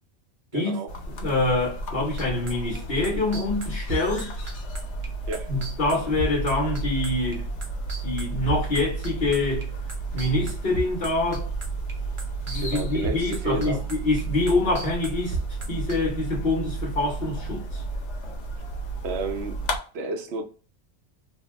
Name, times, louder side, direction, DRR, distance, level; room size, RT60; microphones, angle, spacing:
voice 1, 0.5-0.9 5.3-5.5 12.6-13.8 19.0-20.4, right 3 dB, 70° right, 0.8 m, -31 dB
sound 1, 0.9-19.8, right 2 dB, 90° left, 1.0 m, -32 dB
voice 2, 1.1-4.5 5.5-7.5 8.0-9.7 10.1-11.5 12.5-15.4 15.7-17.8, left 2 dB, 55° left, 1.2 m, -26 dB
sound 2, 2.2-11.9 12.2-16.2, right 2 dB, 35° right, 0.6 m, -34 dB
2.7 x 2.2 x 3.1 m
omnidirectional pair, 1.2 m